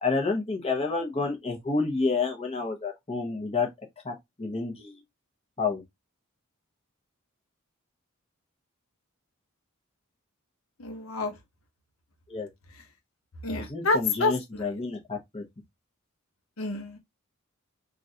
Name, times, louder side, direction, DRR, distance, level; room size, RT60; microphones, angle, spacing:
voice 1, 0.0-3.7 4.0-5.0 5.6-5.8 12.3-12.5 13.6-15.4, left 4 dB, 30° left, 0.9 m, -29 dB
voice 2, 10.8-11.3 13.4-14.6 16.6-17.0, left 3 dB, 80° left, 0.9 m, -28 dB
3.8 x 2.5 x 2.8 m
head